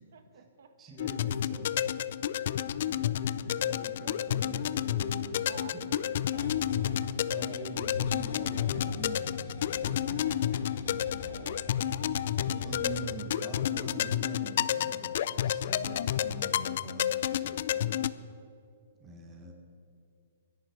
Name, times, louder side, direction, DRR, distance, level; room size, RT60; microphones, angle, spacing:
voice 1, 0.1-1.0 1.5-2.0 3.2-3.5 5.5-7.2 7.5-7.8 11.2-11.7 12.4-13.9, right 6 dB, 65° right, 8 dB, 1.3 m, -51 dB
voice 2, 0.8-1.6 2.9-5.8 7.3-11.4 12.6-18.0 19.0-19.5, right 3 dB, 15° right, 2 dB, 1.7 m, -45 dB
sound 1, 1.0-18.1, left 10 dB, 50° left, 0.4 m, -31 dB
sound 2, 6.1-13.0, left 3 dB, 85° left, 3.5 m, -43 dB
23.0 x 11.0 x 4.8 m, 2.5 s
hypercardioid pair, 170°, 0 cm